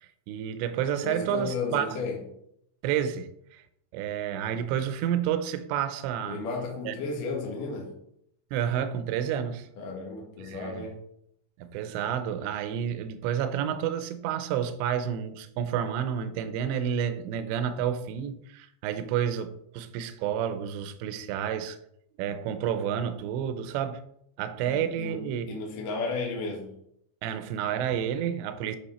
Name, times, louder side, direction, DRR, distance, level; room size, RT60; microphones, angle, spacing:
voice 1, 0.0-1.9 2.8-3.6 3.9-6.4 6.9-7.0 8.5-9.7 10.4-10.9 11.6-21.8 22.2-24.0 24.4-25.5 27.2-28.8, right 9 dB, 80° right, 2.8 m, -30 dB
voice 2, 1.0-2.2 6.3-8.0 9.8-11.0 24.7-26.8, left 3 dB, 60° left, 2.4 m, -34 dB
9.9 x 5.2 x 4.3 m
omnidirectional pair, 5.4 m